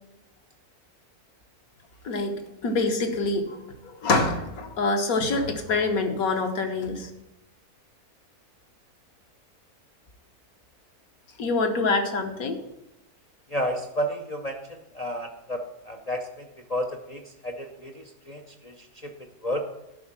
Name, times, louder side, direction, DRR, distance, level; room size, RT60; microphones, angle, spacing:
voice 1, 2.0-7.1 11.4-12.6, left 3 dB, 65° left, 5 dB, 1.6 m, -26 dB
voice 2, 13.5-19.1 19.4-19.7, equal, 50° left, 4 dB, 0.4 m, -32 dB
11.0 x 4.2 x 7.3 m, 0.91 s
omnidirectional pair, 1.6 m